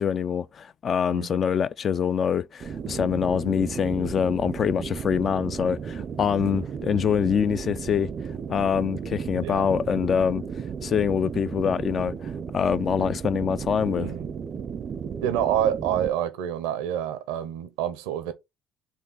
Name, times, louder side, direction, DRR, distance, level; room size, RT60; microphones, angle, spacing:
voice 1, 0.0-8.1 8.5-10.4 10.8-14.1, left 7 dB, 45° left, 0.3 m, -25 dB
voice 2, 1.1-1.4 4.7-5.0 6.4-6.7 9.4-9.7 14.0-14.3 15.2-18.3, right 10 dB, 85° right, 0.7 m, -28 dB
sound 1, 2.6-16.1, right 7 dB, 45° right, 0.5 m, -34 dB
4.4 x 2.6 x 3.8 m
supercardioid pair, 75°, 0 cm